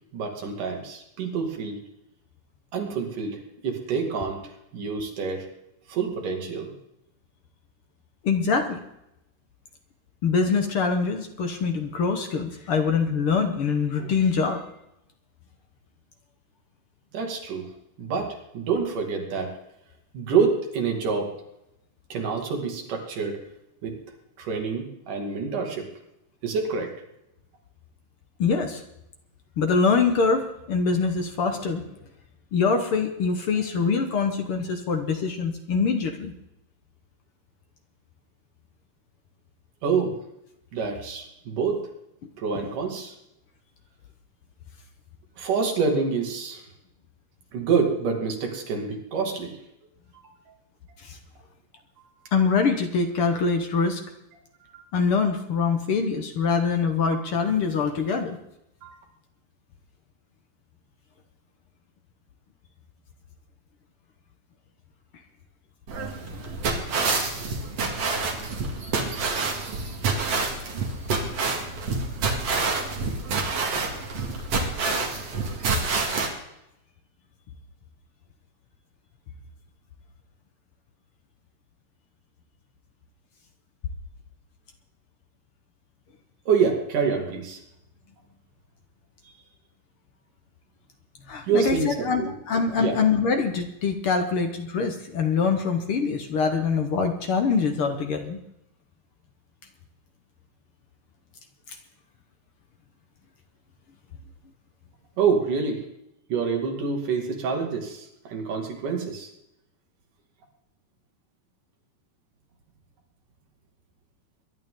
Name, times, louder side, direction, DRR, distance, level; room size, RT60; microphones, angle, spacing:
voice 1, 0.1-1.8 2.7-5.5 5.9-6.7 17.1-17.7 18.0-19.5 20.1-21.3 22.1-23.4 23.8-23.9 24.4-25.9 26.4-26.9 39.8-40.1 40.7-41.8 42.4-43.1 45.4-46.7 47.5-49.6 50.2-50.3 54.7-54.8 57.1-57.2 58.8-59.0 86.5-87.6 91.4-92.4 92.8-93.0 105.2-105.8 106.3-109.3, right 5 dB, 80° right, 2 dB, 3.8 m, -27 dB
voice 2, 8.2-8.8 10.2-14.6 28.4-28.8 29.6-31.9 32.5-36.3 51.0-51.2 52.3-54.0 54.9-58.4 91.3-98.4, left 5 dB, 60° left, 5 dB, 1.6 m, -24 dB
sound 1, 65.9-76.3, right 3 dB, 50° right, 2.9 m, -27 dB
23.0 x 11.0 x 3.8 m, 0.84 s
omnidirectional pair, 3.7 m